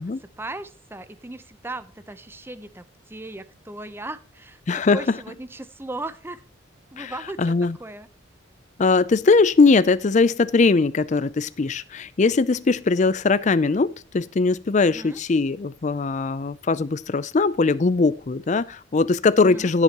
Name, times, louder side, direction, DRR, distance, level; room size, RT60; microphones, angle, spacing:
voice 1, 0.4-6.4 6.9-7.5 7.8-8.1 14.9-15.2 19.4-19.7, right 2 dB, 10° right, 0.7 m, -37 dB
voice 2, 4.7-5.2 7.0-7.8 8.8-19.8, left 3 dB, 35° left, 0.4 m, -20 dB
16.0 x 7.3 x 3.0 m
head